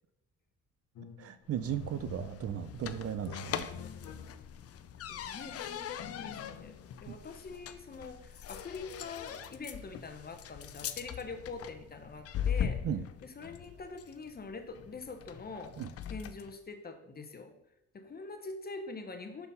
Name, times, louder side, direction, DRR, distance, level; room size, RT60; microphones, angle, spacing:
sound 1, 1.0-1.3 1.6-4.7, left 3 dB, 65° left, 0.9 m, -47 dB
voice 1, 1.2-3.7 7.1-7.2 12.8-13.0 15.8-15.9, right 9 dB, 50° right, 12 dB, 0.5 m, -36 dB
sound 2, 1.5-16.5, left 8 dB, 50° left, 0.5 m, -41 dB
voice 2, 5.1-12.8 13.2-15.7 16.1-17.5 17.9-19.5, left 4 dB, 30° left, 6 dB, 0.9 m, -44 dB
5.8 x 4.1 x 5.5 m, 0.89 s
cardioid pair, 90°, 30 cm